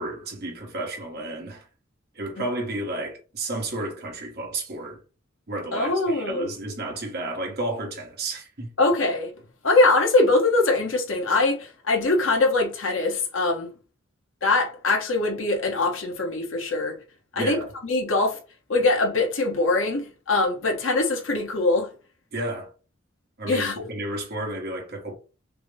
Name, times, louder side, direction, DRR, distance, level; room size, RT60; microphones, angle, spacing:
voice 1, 0.0-1.7 2.1-5.0 5.5-8.7 17.3-17.7 22.3-22.7 23.4-25.1, right 2 dB, 55° right, 1.4 m, -32 dB
voice 2, 5.7-6.5 8.8-9.3 9.6-13.7 14.4-17.0 17.3-17.6 17.8-18.4 18.7-21.9 23.5-23.7, left 2 dB, 80° left, 1.3 m, -22 dB
5.9 x 2.2 x 3.4 m
head